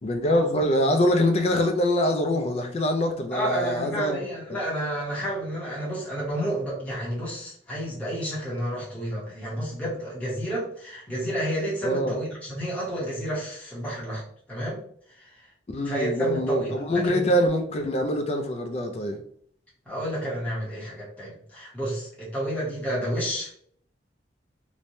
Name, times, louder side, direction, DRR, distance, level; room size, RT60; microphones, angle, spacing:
voice 1, 0.0-4.2 4.5-4.6 11.8-12.2 15.7-19.2, equal, 35° left, 0.3 m, -24 dB
voice 2, 3.3-14.2 14.5-14.8 15.1-15.3 15.8-17.3 19.9-23.6, equal, 10° left, 0.8 m, -30 dB
3.1 x 2.1 x 2.6 m
head